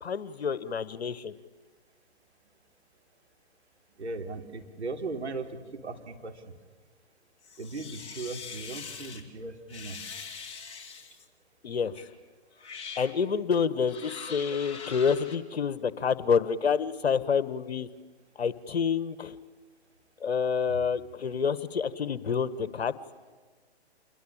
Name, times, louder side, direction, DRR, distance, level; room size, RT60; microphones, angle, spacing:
voice 1, 0.0-1.3 11.6-11.9 13.0-17.9 18.4-19.4 20.2-22.9, left 6 dB, 70° left, 15 dB, 1.4 m, -28 dB
voice 2, 4.0-5.5 5.8-6.5 7.6-10.0, right 3 dB, 80° right, 4 dB, 3.6 m, -37 dB
sound 1, 7.4-9.2 9.7-11.3 11.9-12.1 12.6-13.1 13.8-15.4, left 5 dB, 15° left, 2.8 m, -42 dB
28.0 x 21.5 x 8.7 m, 1.4 s
figure-of-eight pair, 130°, 33 cm